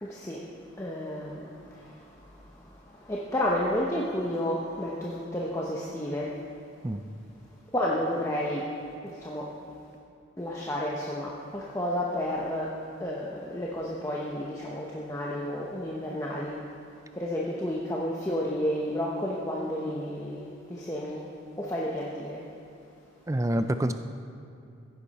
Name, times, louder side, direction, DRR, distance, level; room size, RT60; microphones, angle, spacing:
voice 1, 0.0-6.4 7.7-8.6 9.0-9.5 10.4-16.6 17.1-21.3 21.6-22.4, left 1 dB, 15° left, -4 dB, 0.9 m, -31 dB
voice 2, 23.3-23.9, right 1 dB, 15° right, 9 dB, 0.4 m, -26 dB
15.5 x 10.5 x 4.2 m, 2.6 s
head